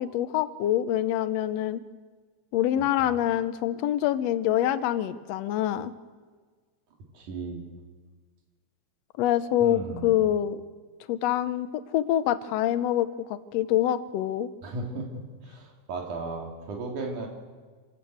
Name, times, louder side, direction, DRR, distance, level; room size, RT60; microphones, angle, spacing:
voice 1, 0.0-1.8 2.5-5.9 9.2-10.6 11.1-11.7 11.9-14.5, left 12 dB, 75° left, 12 dB, 1.7 m, -25 dB
voice 2, 2.8-3.1 7.1-7.7 9.6-10.3 14.6-17.3, right 3 dB, 80° right, 0 dB, 4.0 m, -36 dB
27.0 x 13.0 x 8.1 m, 1.5 s
omnidirectional pair, 3.5 m